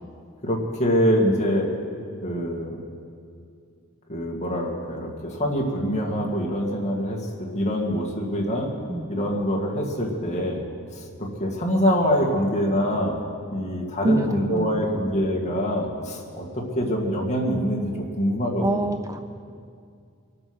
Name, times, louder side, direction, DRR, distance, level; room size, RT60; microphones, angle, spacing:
voice 1, 0.4-1.7 2.2-2.8 4.1-8.7 9.1-10.6 10.9-13.2 13.5-18.9, equal, 35° left, -1 dB, 2.3 m, -25 dB
voice 2, 14.0-14.8 18.6-19.2, right 1 dB, 15° right, 7 dB, 0.4 m, -25 dB
24.0 x 8.9 x 6.2 m, 2.3 s
head